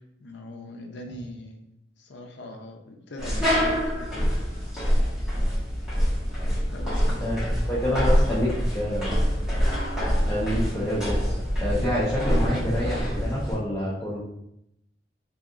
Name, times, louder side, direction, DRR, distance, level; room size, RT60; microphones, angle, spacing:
voice 1, 0.0-1.6 2.0-4.2 6.7-7.1, left 1 dB, 70° left, 3 dB, 0.5 m, -41 dB
sound 1, 3.2-13.5, equal, 5° right, 1.4 m, -25 dB
voice 2, 7.2-9.2 10.3-11.3 11.6-14.2, left 1 dB, 15° left, -9 dB, 0.7 m, -27 dB
3.9 x 2.7 x 2.4 m, 0.80 s
head